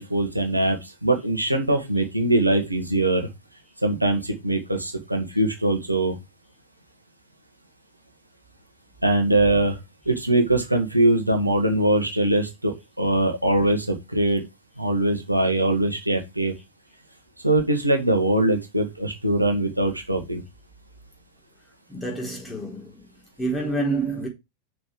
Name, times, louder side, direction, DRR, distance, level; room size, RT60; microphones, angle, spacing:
voice 1, 0.0-3.3 3.8-6.2 9.0-9.8 10.1-14.4 14.8-16.5 17.4-20.4, right 1 dB, 85° right, 1.9 m, -22 dB
voice 2, 21.9-23.1 23.4-24.3, right 2 dB, 10° left, 4.4 m, -28 dB
6.8 x 6.4 x 4.7 m
figure-of-eight pair, 90°, 0 cm